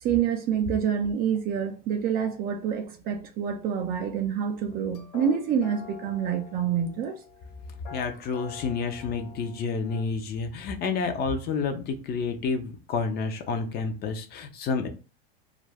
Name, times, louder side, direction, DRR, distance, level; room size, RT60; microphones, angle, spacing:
voice 1, 0.0-7.2, right 8 dB, 30° right, 0.4 m, -27 dB
sound 1, 4.7-10.0, left 7 dB, 55° left, 1.3 m, -46 dB
voice 2, 7.9-14.9, left 5 dB, 35° left, 0.5 m, -29 dB
2.4 x 2.1 x 3.3 m
supercardioid pair, 120°, 29 cm